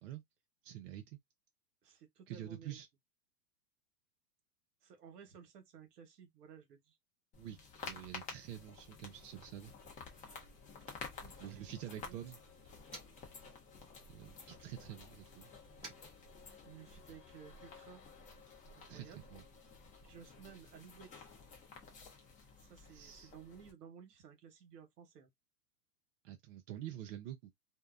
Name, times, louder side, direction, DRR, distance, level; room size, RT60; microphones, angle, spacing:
voice 1, 0.6-1.2 2.3-2.9 7.4-7.6 7.8-9.7 11.4-12.4 14.1-15.5 18.9-19.4 22.9-23.3 26.2-27.5, right 12 dB, 55° right, 0.6 m, -47 dB
voice 2, 1.8-2.8 4.8-7.0 11.1-12.2 16.6-18.0 18.8-19.3 20.0-21.3 22.6-25.3, right 7 dB, 75° right, 1.1 m, -56 dB
sound 1, 7.3-23.7, left 4 dB, 15° left, 0.6 m, -52 dB
Motor vehicle (road), 9.0-13.4 13.7-17.0, right 2 dB, 20° right, 1.3 m, -60 dB
2.7 x 2.0 x 2.3 m
hypercardioid pair, 120°, 48 cm